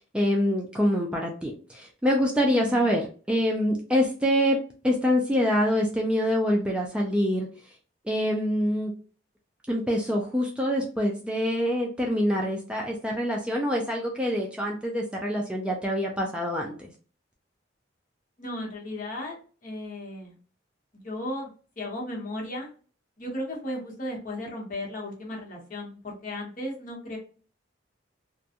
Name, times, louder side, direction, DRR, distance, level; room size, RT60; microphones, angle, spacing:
voice 1, 0.1-4.6 4.8-7.5 8.0-8.9 9.7-16.9, equal, 5° right, -1 dB, 0.3 m, -25 dB
voice 2, 2.4-2.9 18.4-20.3 20.9-22.7 23.2-27.2, left 1 dB, 45° left, -2 dB, 0.9 m, -35 dB
2.4 x 2.2 x 2.7 m, 0.38 s
head